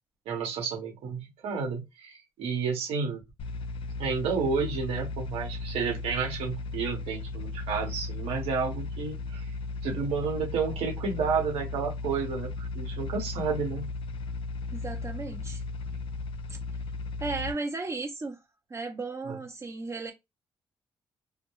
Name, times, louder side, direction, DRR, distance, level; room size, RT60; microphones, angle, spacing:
voice 1, 0.3-3.2 4.0-9.5 9.8-13.9 19.2-19.4, right 5 dB, 85° right, 1.0 m, -31 dB
sound 1, 3.4-17.5, left 3 dB, 65° left, 0.4 m, -36 dB
voice 2, 14.7-15.6 17.2-18.4 18.7-20.1, right 3 dB, 30° right, 0.6 m, -35 dB
2.2 x 2.1 x 3.0 m
cardioid pair, 80°, 10 cm